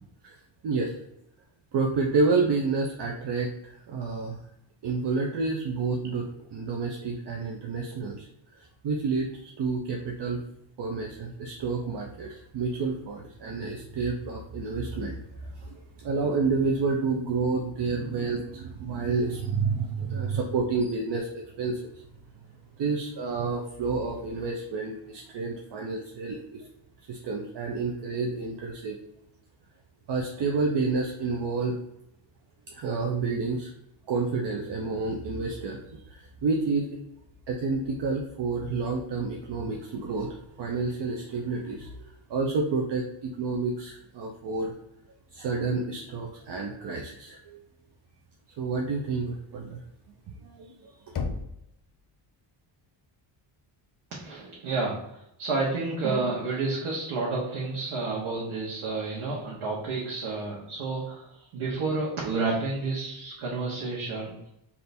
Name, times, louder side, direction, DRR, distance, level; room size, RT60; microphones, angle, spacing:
voice 1, 1.7-4.4 4.8-8.3 8.6-10.4 10.8-21.3 21.6-22.0 22.8-26.7 27.1-29.0 30.1-31.8 32.7-33.7 34.1-36.9 37.5-44.7 45.3-47.6 48.6-49.8 50.4-51.1, right 4 dB, 55° right, 1 dB, 0.7 m, -29 dB
Knock, 51.1-52.1, left 4 dB, 45° left, 0.7 m, -34 dB
voice 2, 54.1-64.5, right 3 dB, 80° right, -4 dB, 1.1 m, -30 dB
3.3 x 2.8 x 4.2 m, 0.80 s
cardioid pair, 90°, 49 cm